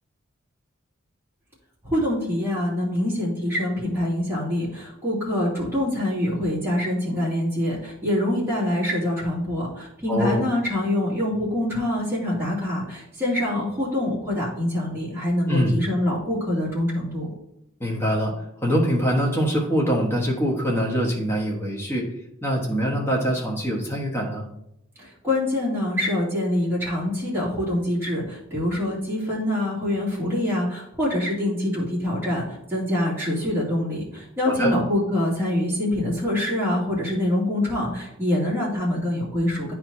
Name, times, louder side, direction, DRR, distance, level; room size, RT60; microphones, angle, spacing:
voice 1, 1.8-17.3 25.0-39.7, left 1 dB, 10° right, -8 dB, 2.5 m, -25 dB
voice 2, 10.1-10.4 15.5-15.7 17.8-18.3 18.6-22.1 22.4-24.5 34.4-34.7, equal, 10° left, -2 dB, 1.3 m, -23 dB
9.7 x 4.6 x 2.7 m, 0.82 s
head